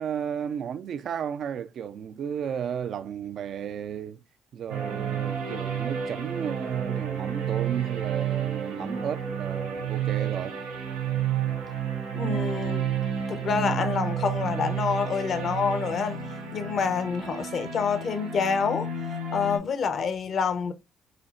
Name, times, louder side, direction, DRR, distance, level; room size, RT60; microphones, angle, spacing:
voice 1, 0.0-4.2 4.5-10.6, right 8 dB, 55° right, 0.5 m, -33 dB
sound 1, 4.7-19.6, right 7 dB, 85° right, 2.5 m, -31 dB
voice 2, 12.1-12.9 13.3-16.2 16.5-18.9 19.3-20.7, left 6 dB, 50° left, 0.9 m, -27 dB
7.7 x 2.8 x 2.5 m
hypercardioid pair, 50°, 0 cm